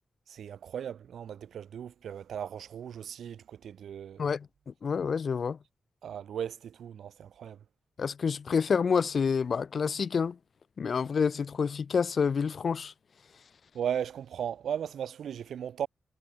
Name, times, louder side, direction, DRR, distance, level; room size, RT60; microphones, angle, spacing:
voice 1, 0.3-4.2 6.0-7.6 13.7-15.9, right 9 dB, 80° right, 3.7 m, -37 dB
voice 2, 4.2-5.6 8.0-10.4 10.8-12.9, left 6 dB, 50° left, 3.5 m, -28 dB
wide cardioid pair, 120°, 0 cm